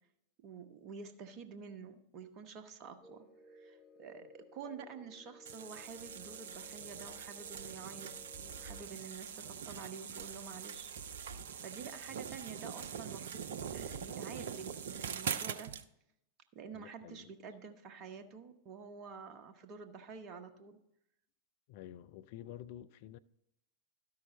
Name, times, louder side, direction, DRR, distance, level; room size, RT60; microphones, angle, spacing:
voice 1, 0.4-3.2 3.5-10.9 11.6-15.7 16.5-20.8, right 5 dB, 35° right, 1.0 m, -49 dB
sound 1, 3.0-8.9, left 1 dB, 25° left, 0.8 m, -58 dB
sound 2, 5.5-15.8, right 7 dB, 60° right, 0.5 m, -43 dB
voice 2, 16.7-17.3 21.7-23.2, left 11 dB, 50° left, 0.4 m, -50 dB
12.5 x 5.7 x 4.0 m
figure-of-eight pair, 90°, 0 cm